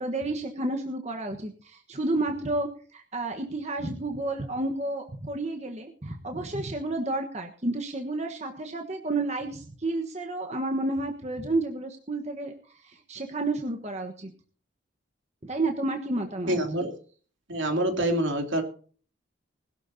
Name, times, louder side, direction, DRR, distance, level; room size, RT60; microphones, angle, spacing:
voice 1, 0.0-14.3 15.4-16.6, right 2 dB, 35° right, 4 dB, 1.3 m, -31 dB
voice 2, 16.5-16.9 17.5-18.6, right 1 dB, 70° right, 3 dB, 2.9 m, -26 dB
20.5 x 12.0 x 2.8 m, 0.42 s
head